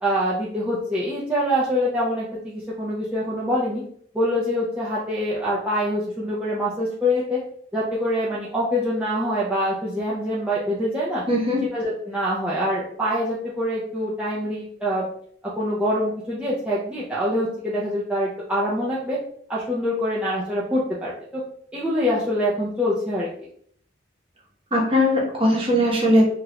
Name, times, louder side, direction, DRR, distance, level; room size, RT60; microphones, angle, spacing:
voice 1, 0.0-3.8 4.1-7.4 7.7-11.2 11.7-15.1 15.5-19.2 19.5-21.4 21.7-23.3, equal, 5° right, -8 dB, 0.4 m, -25 dB
voice 2, 11.3-11.6 24.7-26.2, equal, 30° right, -3 dB, 0.9 m, -19 dB
3.1 x 2.4 x 2.8 m, 0.63 s
head